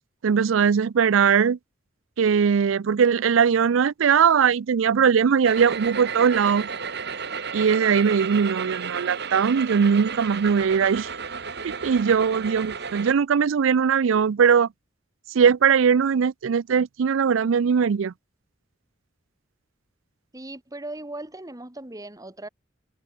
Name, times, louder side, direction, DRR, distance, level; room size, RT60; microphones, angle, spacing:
voice 1, 0.2-1.6 2.2-6.7 7.5-11.1 11.6-14.7 15.3-18.1, right 6 dB, 85° right, 0.4 m, -20 dB
sound 1, 5.4-13.1, right 6 dB, 60° right, 3.9 m, -33 dB
voice 2, 20.3-22.5, right 2 dB, 20° right, 2.2 m, -38 dB
head